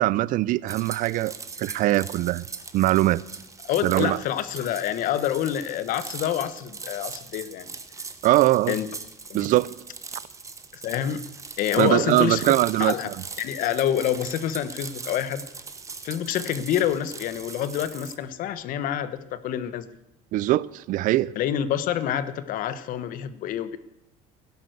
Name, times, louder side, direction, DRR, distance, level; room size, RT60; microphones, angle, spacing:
voice 1, 0.0-1.3 1.6-2.4 2.7-3.2 3.8-4.2 8.2-8.8 9.3-9.8 11.8-13.1 20.3-21.3, right 16 dB, 55° right, 0.6 m, -21 dB
sound 1, 0.7-18.2, right 4 dB, 20° right, 1.2 m, -40 dB
voice 2, 3.6-7.7 8.7-8.9 9.3-9.5 10.7-11.2 11.6-12.5 12.8-13.1 13.4-15.4 16.0-19.9 21.4-23.8, left 10 dB, 55° left, 1.2 m, -27 dB
16.0 x 11.5 x 8.0 m
cardioid pair, 140°, 16 cm